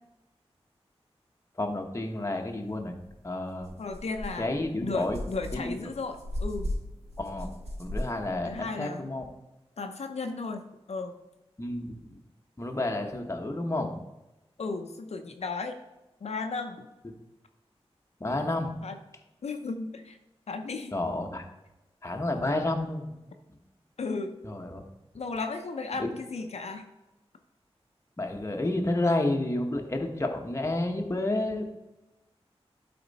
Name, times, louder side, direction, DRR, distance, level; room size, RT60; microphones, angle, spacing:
voice 1, 1.6-3.0 3.2-3.7 4.4-5.2 5.5-5.9 7.2-7.5 7.8-9.2 11.6-12.0 12.6-13.9 18.2-18.7 20.9-21.4 22.0-23.1 24.4-24.8 26.0-26.1 28.2-31.6, left 2 dB, 25° left, 2 dB, 1.1 m, -30 dB
sound 1, 3.0-3.1 3.6-8.6, left 1 dB, 80° right, 2.7 m, -37 dB
voice 2, 3.8-4.5 4.8-6.7 8.3-9.1 9.8-11.1 14.6-15.7 16.2-16.9 18.8-19.0 19.4-20.2 20.5-20.9 24.0-24.4 25.1-26.8, left 3 dB, 85° left, 5 dB, 0.7 m, -35 dB
12.0 x 4.4 x 4.1 m, 0.98 s
wide cardioid pair, 85°, 11 cm